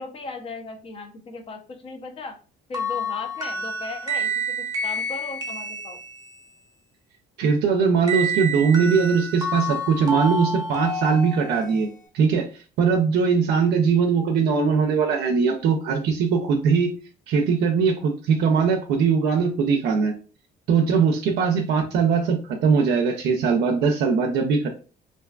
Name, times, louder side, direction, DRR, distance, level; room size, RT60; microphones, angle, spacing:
voice 1, 0.0-2.4 2.7-6.0, left 3 dB, 35° left, 5 dB, 0.6 m, -37 dB
sound 1, 2.7-6.5 8.1-11.8, right 1 dB, 20° right, 0.7 m, -29 dB
voice 2, 7.4-11.9 12.1-12.5 12.8-16.9 17.3-20.1 20.7-24.7, right 5 dB, 75° right, 3 dB, 0.4 m, -21 dB
2.5 x 2.3 x 2.3 m, 0.36 s
cardioid pair, 110°, 17 cm